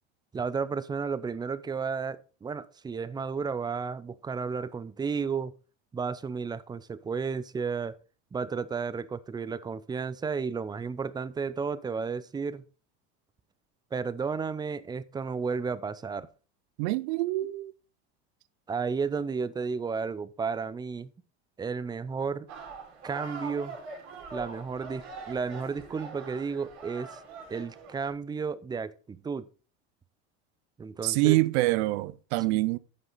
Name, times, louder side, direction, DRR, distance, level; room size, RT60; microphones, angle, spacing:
voice 1, 0.3-5.5 5.9-7.9 8.3-12.6 13.9-16.3 18.7-21.1 21.6-22.5 23.0-23.8 24.3-27.2 27.5-29.5 30.8-31.4 32.5-32.6, right 5 dB, 15° right, 0.4 m, -33 dB
voice 2, 16.8-17.7 31.0-32.8, right 19 dB, 75° right, 0.6 m, -25 dB
sound 1, 22.5-28.1, right 4 dB, 55° right, 4.3 m, -43 dB
9.5 x 6.4 x 4.0 m
supercardioid pair, 115°, 33 cm